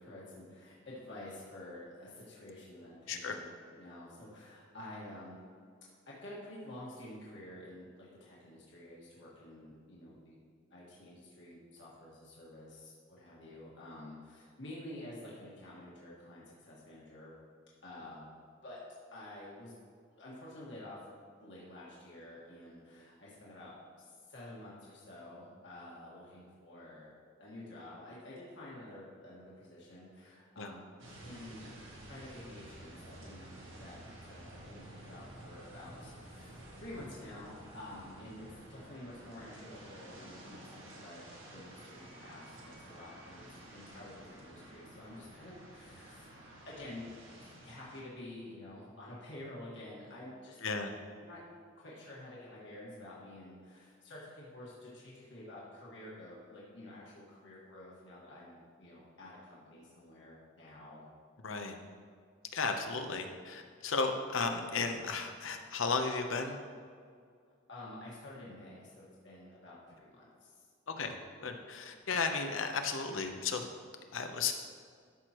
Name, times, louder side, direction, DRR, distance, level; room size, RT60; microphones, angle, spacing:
voice 1, 0.0-3.5 3.8-5.4 6.1-10.4 10.7-17.3 17.8-18.3 18.6-18.8 19.1-19.8 20.2-21.0 21.4-27.1 27.4-30.8 31.2-34.0 34.2-41.2 41.5-46.3 46.6-50.6 51.2-51.4 51.8-61.0 67.7-70.6, left 1 dB, 65° left, -6 dB, 1.7 m, -50 dB
sound 1, 31.0-48.0, right 1 dB, 85° right, 1.7 m, -52 dB
voice 2, 50.6-50.9 61.4-61.7 62.5-66.6 70.9-73.7 74.1-74.5, left 4 dB, 90° left, 5 dB, 0.8 m, -34 dB
12.5 x 6.2 x 3.0 m, 2.1 s
head